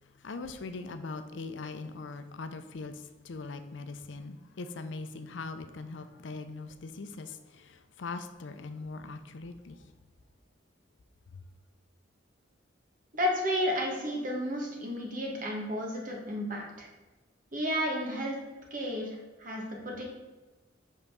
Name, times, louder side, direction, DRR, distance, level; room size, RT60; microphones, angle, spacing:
voice 1, 0.0-9.9 11.3-11.4, left 3 dB, 75° left, 9 dB, 0.5 m, -41 dB
voice 2, 13.1-16.9 17.5-18.4 18.7-20.0, equal, 45° right, 0 dB, 1.5 m, -32 dB
5.5 x 4.0 x 6.1 m, 1.2 s
head